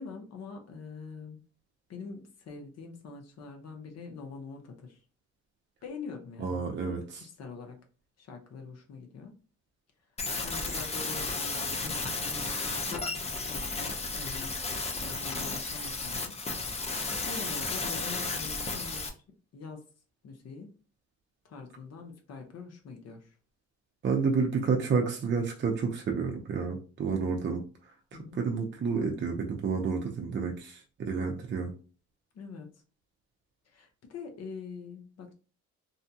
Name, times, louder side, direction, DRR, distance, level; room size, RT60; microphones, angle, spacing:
voice 1, 0.0-1.4 1.9-5.0 5.8-6.6 7.1-7.8 8.2-9.3 10.4-14.6 14.9-16.3 17.3-19.2 19.5-19.8 20.2-20.7 21.4-23.3 27.0-27.3 28.1-28.4 32.3-32.7 33.7-35.3, left 4 dB, 55° left, 0.8 m, -44 dB
voice 2, 6.4-7.2 24.0-27.6 28.3-31.7, right 5 dB, 40° right, 0.5 m, -30 dB
sound 1, 10.2-19.1, left 3 dB, 20° left, 0.5 m, -33 dB
2.6 x 2.2 x 2.7 m
cardioid pair, 90°, 30 cm